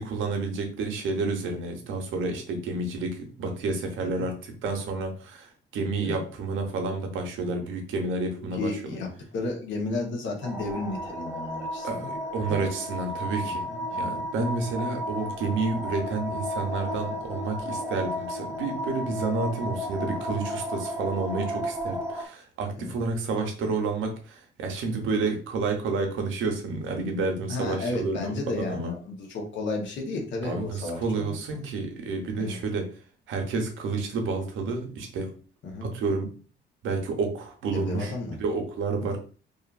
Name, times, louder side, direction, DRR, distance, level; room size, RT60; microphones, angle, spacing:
voice 1, 0.0-9.0 11.8-13.6 13.9-28.9 30.4-32.9 33.3-35.3 35.8-36.3 36.8-38.1 38.4-39.2, right 3 dB, 80° right, 4 dB, 0.7 m, -30 dB
voice 2, 8.5-12.2 12.4-12.6 13.7-14.1 22.8-23.0 27.5-31.4 32.4-32.6 35.6-35.9 37.7-38.4, left 2 dB, 70° left, 1 dB, 0.9 m, -33 dB
sound 1, 10.4-22.3, equal, 15° right, 0.5 m, -33 dB
2.6 x 2.4 x 2.4 m, 0.39 s
cardioid pair, 90°, 20 cm